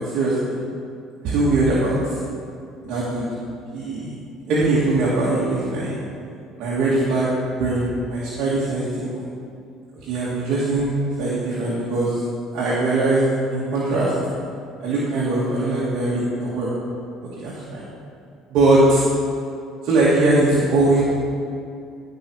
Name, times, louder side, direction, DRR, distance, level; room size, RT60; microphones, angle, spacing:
voice 1, 0.1-0.6 1.2-2.0 2.8-3.2 3.7-4.1 4.5-6.0 6.6-7.3 7.6-9.2 9.9-12.2 12.5-13.2 13.5-14.1 14.8-16.7 17.4-17.8 18.5-19.1 19.8-21.0, right 2 dB, 70° right, -8 dB, 2.4 m, -21 dB
15.5 x 5.7 x 4.8 m, 2.4 s
supercardioid pair, 100°, 0 cm